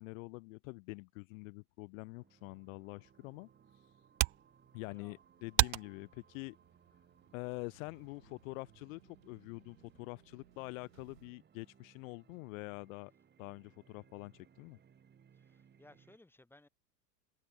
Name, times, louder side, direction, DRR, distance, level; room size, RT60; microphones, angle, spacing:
voice 1, 0.0-3.5 4.7-6.6 7.3-13.1 13.4-14.8, left 27 dB, 55° left, 1.1 m, -46 dB
sound 1, 1.9-16.2, right 7 dB, 20° right, 2.4 m, -66 dB
sound 2, 3.0-8.1, right 31 dB, 45° right, 0.5 m, -38 dB
sound 3, 4.5-11.3, right 11 dB, 80° right, 7.7 m, -67 dB
voice 2, 15.3-16.7, left 2 dB, 5° left, 2.5 m, -62 dB
hypercardioid pair, 105°, 49 cm